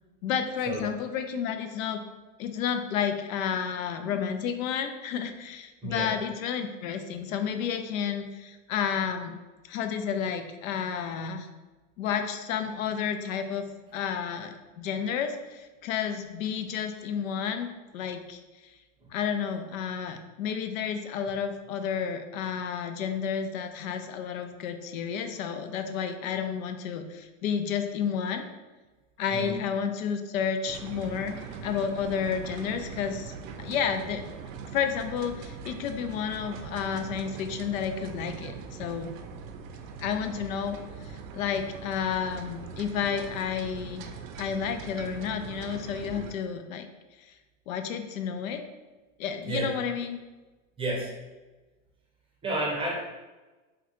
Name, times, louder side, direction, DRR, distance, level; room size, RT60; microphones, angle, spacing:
voice 1, 0.2-2.0 2.4-9.4 9.7-11.5 12.0-18.4 19.1-28.5 29.2-34.3 34.7-39.1 40.0-44.0 44.4-46.9 47.7-48.6 49.2-50.2, left 7 dB, 90° left, 7 dB, 0.5 m, -31 dB
voice 2, 5.8-6.1 19.0-19.1 29.3-29.6 49.4-49.7 50.8-51.1 52.4-52.9, right 1 dB, 15° right, -2 dB, 0.6 m, -31 dB
sound 1, 30.7-46.3, right 6 dB, 75° right, 0.5 m, -41 dB
3.5 x 2.2 x 2.9 m, 1.2 s
supercardioid pair, 130°, 40 cm